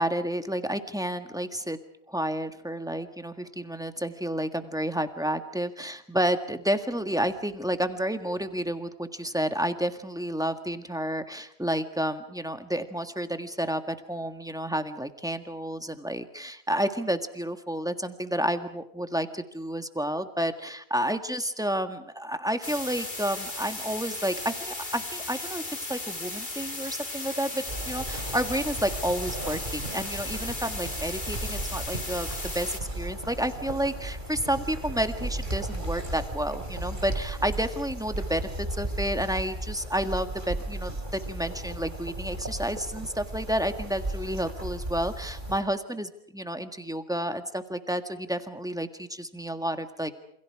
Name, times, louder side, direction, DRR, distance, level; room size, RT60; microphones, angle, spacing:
voice 1, 0.0-1.8 2.1-50.1, equal, 5° right, 8 dB, 1.6 m, -30 dB
sound 1, 22.6-32.8, left 2 dB, 35° left, 2.9 m, -36 dB
sound 2, 27.7-45.6, right 1 dB, 35° right, 3.4 m, -35 dB
28.5 x 27.0 x 4.8 m, 0.71 s
omnidirectional pair, 1.4 m